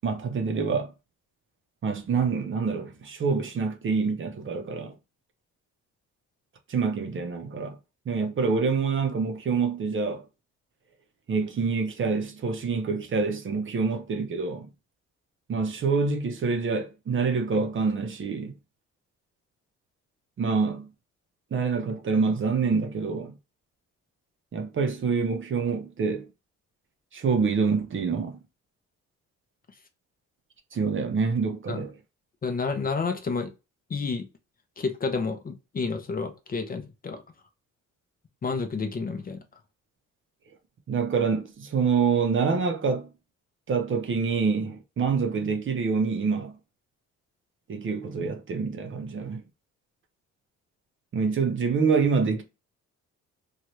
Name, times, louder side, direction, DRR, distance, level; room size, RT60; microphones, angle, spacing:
voice 1, 0.0-0.9 1.8-4.9 6.7-7.8 8.1-10.2 11.3-14.7 15.5-18.5 20.4-20.9 21.5-23.3 24.5-26.3 27.1-28.4 30.7-32.0 40.9-43.1 43.7-46.6 47.7-49.4 51.1-52.4, right 5 dB, 40° right, 0.7 m, -26 dB
voice 2, 32.4-33.5 33.9-34.3 34.8-37.2 38.4-39.4, left 4 dB, 30° left, 0.6 m, -30 dB
2.8 x 2.3 x 3.1 m
cardioid pair, 90°, 30 cm